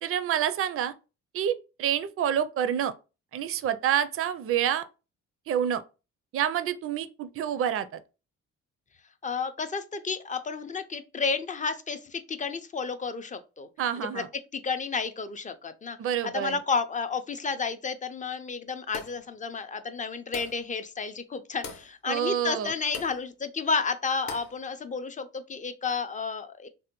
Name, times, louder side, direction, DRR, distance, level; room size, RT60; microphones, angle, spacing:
voice 1, 0.0-0.9 1.3-2.9 3.3-4.9 5.5-5.8 6.3-8.0 13.8-14.3 16.0-16.6 22.1-22.7, right 9 dB, 50° right, 0.4 m, -28 dB
voice 2, 9.2-13.7 14.1-14.2 14.5-16.0 16.2-26.7, left 5 dB, 25° left, 0.4 m, -31 dB
sound 1, 18.9-19.3 20.3-20.7 21.6-21.9 22.9-23.2 24.3-24.6, left 4 dB, 65° left, 0.8 m, -40 dB
3.3 x 2.2 x 2.9 m
cardioid pair, 90°, 30 cm